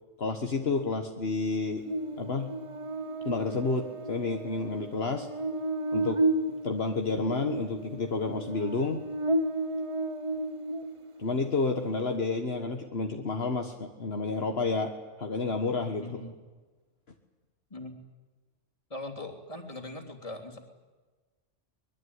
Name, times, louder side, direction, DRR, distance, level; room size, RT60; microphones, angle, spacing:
voice 1, 0.2-1.8 2.2-2.5 3.2-5.3 5.9-6.2 6.6-9.0 11.2-16.2, left 3 dB, 55° left, 4 dB, 1.7 m, -30 dB
Buzz, 1.9-11.3, right 1 dB, 30° right, 0.8 m, -33 dB
voice 2, 16.0-16.4 17.7-17.9 18.9-20.6, left 2 dB, 30° left, 2 dB, 3.3 m, -40 dB
24.0 x 21.5 x 9.6 m, 1.3 s
omnidirectional pair, 1.2 m